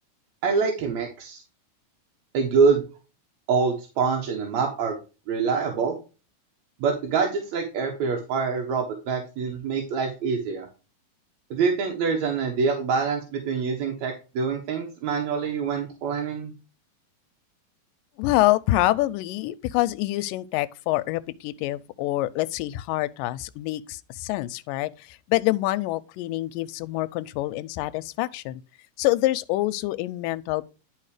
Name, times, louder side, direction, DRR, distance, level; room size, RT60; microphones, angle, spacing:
voice 1, 0.4-1.4 2.3-2.8 3.5-5.0 5.3-6.0 6.8-10.7 11.5-16.5, right 5 dB, 65° right, 2.2 m, -25 dB
voice 2, 18.2-28.6 29.0-30.6, left 17 dB, 90° left, 2.2 m, -26 dB
11.0 x 4.4 x 4.9 m
omnidirectional pair, 3.8 m